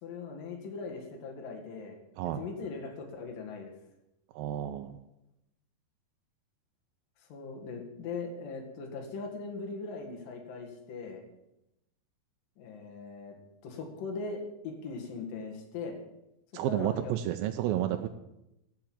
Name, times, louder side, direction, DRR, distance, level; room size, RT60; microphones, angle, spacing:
voice 1, 0.0-3.7 7.3-11.2 12.6-13.4 13.6-15.9 16.7-17.2, left 4 dB, 60° left, 1 dB, 3.5 m, -40 dB
voice 2, 4.3-5.0 16.5-18.1, right 12 dB, 80° right, 6 dB, 2.2 m, -31 dB
13.0 x 6.0 x 9.0 m, 0.87 s
omnidirectional pair, 4.6 m